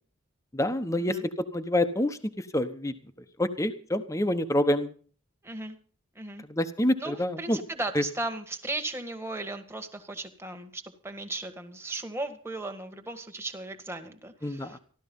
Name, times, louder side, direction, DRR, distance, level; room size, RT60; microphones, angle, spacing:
voice 1, 0.5-1.2 1.5-2.2 2.5-2.9 3.4-4.9 6.5-7.6 7.9-8.0 14.4-14.8, left 1 dB, 15° left, 9 dB, 1.1 m, -27 dB
voice 2, 5.4-5.8 6.2-6.4 7.0-14.8, right 2 dB, 10° right, 5 dB, 1.8 m, -36 dB
15.5 x 13.0 x 5.5 m, 0.42 s
head